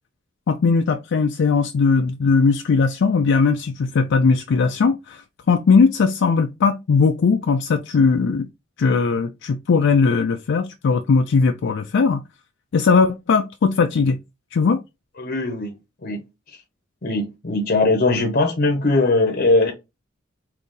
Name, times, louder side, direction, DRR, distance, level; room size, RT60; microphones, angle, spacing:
voice 1, 0.5-5.2 5.5-8.5 8.8-12.2 12.7-14.2 14.5-14.8, left 4 dB, 60° left, 0.4 m, -18 dB
voice 2, 15.2-16.6 17.0-19.7, left 2 dB, 45° left, 0.8 m, -20 dB
3.9 x 2.7 x 3.7 m
head